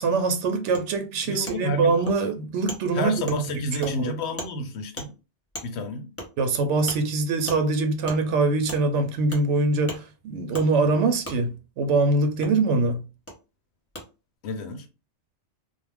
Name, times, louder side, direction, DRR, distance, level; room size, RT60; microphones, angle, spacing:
voice 1, 0.0-3.2 3.8-4.1 6.4-13.0, right 3 dB, 85° right, 0.9 m, -23 dB
Wood, 0.7-0.8 1.5-1.6 2.1-2.2 2.7-2.8 3.3-3.4 3.8-3.9 4.4-4.5 5.0-5.1 5.5-5.7 6.2-6.3 6.9-7.0 7.5-7.6 8.1-8.2 8.7-8.8 9.3-9.4 9.9-10.0 10.5-10.7 11.2-11.4 12.4-12.5 13.3-13.4 13.9-14.0, equal, 15° left, 0.6 m, -35 dB
voice 2, 1.2-2.0 2.9-5.1 5.6-6.1 14.4-14.9, left 1 dB, 70° left, 0.9 m, -30 dB
2.4 x 2.1 x 3.2 m
omnidirectional pair, 1.2 m